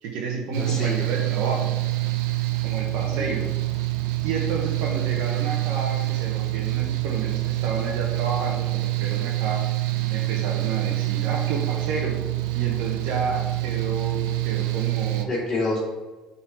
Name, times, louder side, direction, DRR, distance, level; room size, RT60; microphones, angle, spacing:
voice 1, 0.0-1.7 2.6-3.5 4.2-9.6 10.1-12.2 12.5-15.3, right 4 dB, 70° right, -1 dB, 1.3 m, -31 dB
Mechanical fan, 0.5-15.3, right 19 dB, 85° right, 0.7 m, -26 dB
voice 2, 0.6-1.1 3.0-3.3 15.3-15.8, left 2 dB, 20° left, -9 dB, 2.5 m, -28 dB
7.3 x 4.2 x 6.1 m, 1.2 s
supercardioid pair, 105°, 2 cm